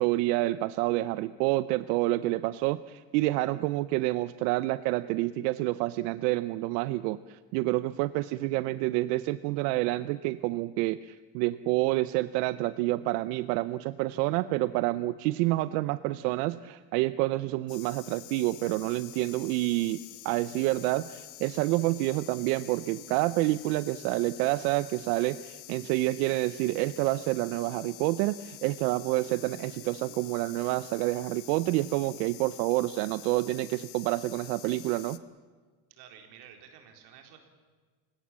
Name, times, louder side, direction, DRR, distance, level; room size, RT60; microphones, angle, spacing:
voice 1, 0.0-20.0 20.2-35.2, right 18 dB, 85° right, 15 dB, 0.8 m, -28 dB
sound 1, 17.7-35.2, left 18 dB, 75° left, 1.4 m, -47 dB
voice 2, 35.9-37.4, right 8 dB, 55° right, 4 dB, 4.1 m, -51 dB
29.5 x 17.5 x 7.5 m, 1.5 s
cardioid pair, 175°, 46 cm